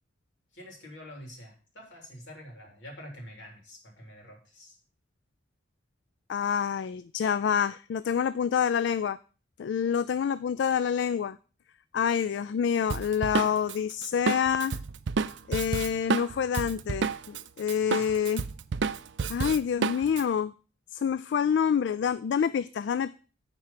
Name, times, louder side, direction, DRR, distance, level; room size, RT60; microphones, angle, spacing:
voice 1, 0.5-4.8 18.0-18.1, equal, 90° left, 0 dB, 3.3 m, -47 dB
voice 2, 6.3-9.2 9.6-11.4 11.9-14.8 15.5-18.4 19.3-20.5 20.9-23.1, left 7 dB, 75° left, 15 dB, 0.3 m, -27 dB
Drum kit, 12.9-17.4 17.7-20.2, right 5 dB, 80° right, 0.5 m, -30 dB
9.5 x 4.6 x 5.7 m, 0.37 s
head